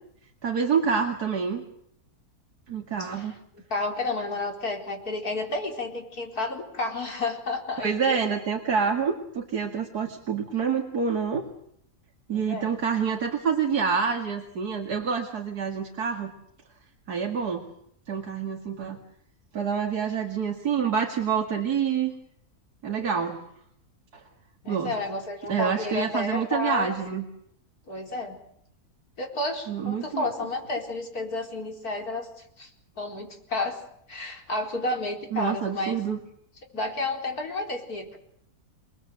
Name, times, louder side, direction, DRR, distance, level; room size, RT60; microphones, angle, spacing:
voice 1, 0.4-1.6 2.7-3.3 7.8-11.5 12.3-16.3 17.1-17.7 18.1-19.0 19.5-22.1 22.8-23.4 24.7-24.9 25.5-27.3 29.7-30.3 35.3-36.2, right 6 dB, 85° right, 3 dB, 2.7 m, -27 dB
voice 2, 3.7-8.2 12.3-12.7 24.6-26.9 27.9-28.4 29.2-32.3 32.6-32.7 33.0-33.8 34.1-36.0 36.7-38.2, left 2 dB, 70° left, 2 dB, 4.9 m, -31 dB
28.5 x 20.5 x 7.9 m, 0.72 s
omnidirectional pair, 1.6 m